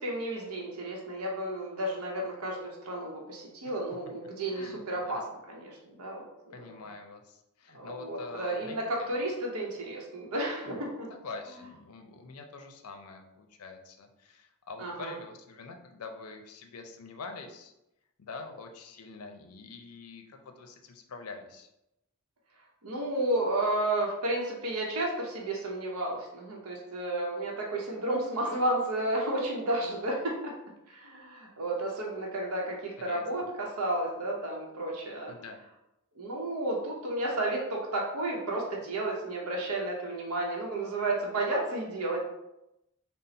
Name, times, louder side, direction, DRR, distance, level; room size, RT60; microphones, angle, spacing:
voice 1, 0.0-5.2 5.5-6.8 7.7-11.1 14.8-15.1 22.8-35.3 36.2-42.3, right 1 dB, 80° right, -2 dB, 0.7 m, -32 dB
voice 2, 4.5-5.2 6.5-9.1 11.1-17.7 18.2-21.7 33.0-33.5 35.3-35.6, left 4 dB, 85° left, 5 dB, 0.5 m, -45 dB
4.1 x 2.0 x 3.9 m, 0.89 s
head